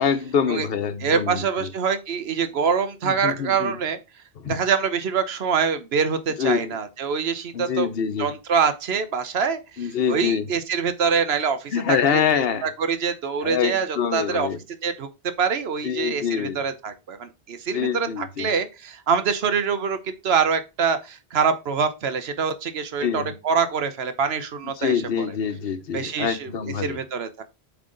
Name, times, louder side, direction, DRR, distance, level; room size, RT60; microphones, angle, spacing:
voice 1, 0.0-1.7 3.0-3.8 4.4-4.6 6.4-6.8 7.5-8.3 9.8-10.5 11.7-12.7 13.4-14.6 15.8-16.7 17.7-18.5 23.0-23.3 24.8-27.0, left 7 dB, 70° left, 1.0 m, -25 dB
voice 2, 1.0-4.0 4.4-7.9 8.2-12.2 12.6-14.5 14.8-15.1 15.4-20.0 20.2-25.3 25.9-26.5 26.8-27.4, right 6 dB, 80° right, 1.1 m, -25 dB
7.5 x 3.6 x 3.8 m
omnidirectional pair, 1.0 m